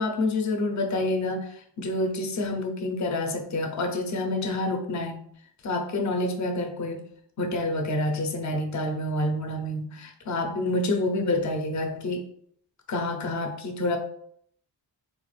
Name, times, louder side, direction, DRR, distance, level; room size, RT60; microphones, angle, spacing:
voice 1, 0.0-5.2 5.6-7.0 7.4-12.2 12.9-14.0, left 2 dB, 40° left, 4 dB, 0.6 m, -28 dB
3.5 x 2.4 x 3.2 m, 0.65 s
wide cardioid pair, 105°, 44 cm